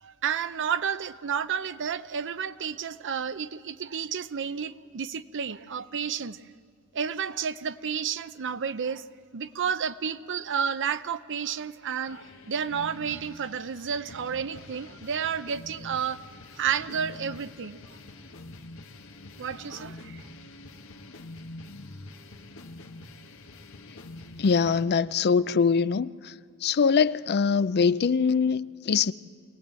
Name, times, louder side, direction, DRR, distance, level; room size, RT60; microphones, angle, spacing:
voice 1, 0.0-6.4 6.9-9.0 9.3-16.2 16.6-17.8 19.4-20.2, right 7 dB, 55° right, 0.7 m, -31 dB
sound 1, 12.1-24.9, left 2 dB, 65° left, 1.4 m, -46 dB
voice 2, 24.4-26.3 26.6-29.1, left 5 dB, 50° left, 0.5 m, -23 dB
24.0 x 18.0 x 7.5 m
head